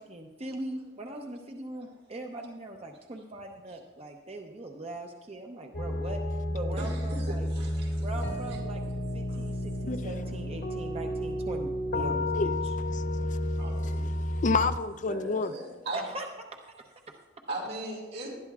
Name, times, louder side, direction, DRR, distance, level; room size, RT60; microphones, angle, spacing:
voice 1, 0.0-6.2 6.5-7.5 8.0-8.8 9.1-12.5 15.9-16.3 16.5-16.6 17.1-17.2, right 1 dB, 35° right, 0.7 m, -40 dB
sound 1, 5.7-14.8, left 1 dB, 85° left, 1.8 m, -31 dB
voice 2, 6.7-8.6 13.6-14.1 15.0-16.0 17.5-18.3, right 1 dB, 80° right, 4.4 m, -39 dB
voice 3, 9.9-10.2 12.3-12.5 12.9-13.4 14.3-15.5, left 4 dB, 45° left, 0.5 m, -29 dB
19.0 x 12.5 x 2.4 m
head